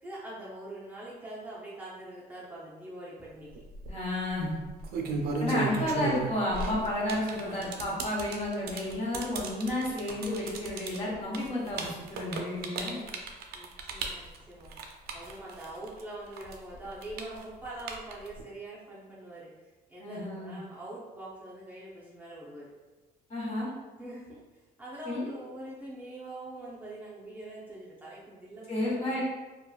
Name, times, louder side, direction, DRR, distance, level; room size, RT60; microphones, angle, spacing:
voice 1, 0.0-3.6 5.7-6.0 7.0-7.6 13.5-14.7 15.1-22.7 24.0-29.2, right 1 dB, 10° right, -8 dB, 0.6 m, -44 dB
sound 1, 3.6-3.9 4.7-16.0 16.3-18.4, right 3 dB, 65° right, 0.4 m, -35 dB
voice 2, 3.9-4.6 5.4-13.0 20.0-20.6 23.3-23.7 25.0-25.3 28.7-29.2, left 1 dB, 40° left, -6 dB, 1.1 m, -31 dB
2.9 x 2.3 x 2.3 m, 1.2 s
cardioid pair, 110°, 17 cm